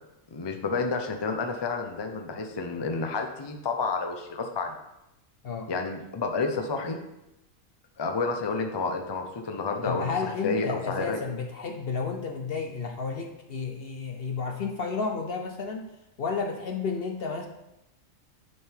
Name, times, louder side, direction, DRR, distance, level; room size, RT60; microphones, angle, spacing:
voice 1, 0.3-4.8 5.7-7.0 8.0-11.2, left 4 dB, 30° left, 4 dB, 0.5 m, -30 dB
voice 2, 9.8-15.9 16.2-17.5, left 5 dB, 55° left, 4 dB, 0.7 m, -32 dB
9.4 x 3.8 x 4.4 m, 0.88 s
omnidirectional pair, 1.4 m